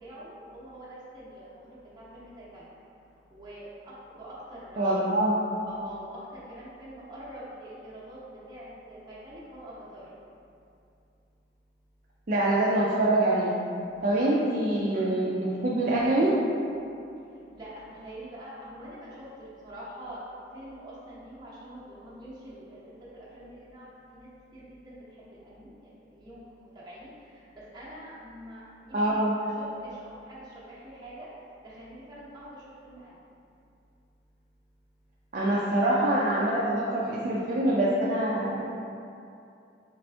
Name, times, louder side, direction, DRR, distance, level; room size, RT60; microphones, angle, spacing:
voice 1, 0.0-2.7 3.3-5.0 5.6-10.1 13.9-14.0 17.5-20.2 20.5-22.8 23.1-25.0 25.3-29.2 29.6-31.3 31.6-33.1, right 1 dB, 25° right, -8 dB, 0.9 m, -45 dB
voice 2, 4.8-5.3 12.3-13.5 14.0-16.3 28.9-29.3 35.3-38.6, right 1 dB, 45° right, -6 dB, 0.4 m, -25 dB
3.9 x 3.4 x 3.3 m, 2.6 s
head